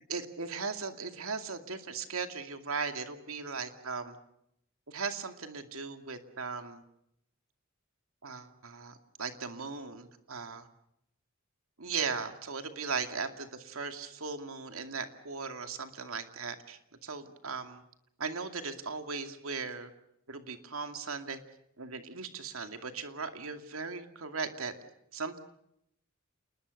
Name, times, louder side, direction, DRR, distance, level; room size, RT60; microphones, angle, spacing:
voice 1, 0.1-4.2 4.9-6.8 8.2-10.7 11.8-17.8 18.2-19.9 20.3-21.4 21.8-24.7 25.1-25.4, right 5 dB, 85° right, 7 dB, 2.4 m, -38 dB
29.5 x 20.5 x 6.6 m, 0.76 s
head